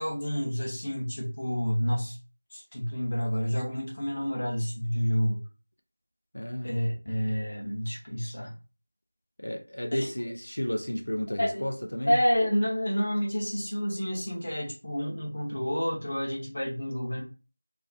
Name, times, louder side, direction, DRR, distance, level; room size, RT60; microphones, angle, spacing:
voice 1, 0.0-2.2 2.5-5.4 6.6-8.5 9.9-10.1 11.4-11.6 12.1-17.2, equal, 30° left, 0.7 m, -29 dB
voice 2, 6.3-6.7 9.4-12.2, equal, 85° left, 0.5 m, -32 dB
2.6 x 2.4 x 2.3 m
figure-of-eight pair, 180°, 0 cm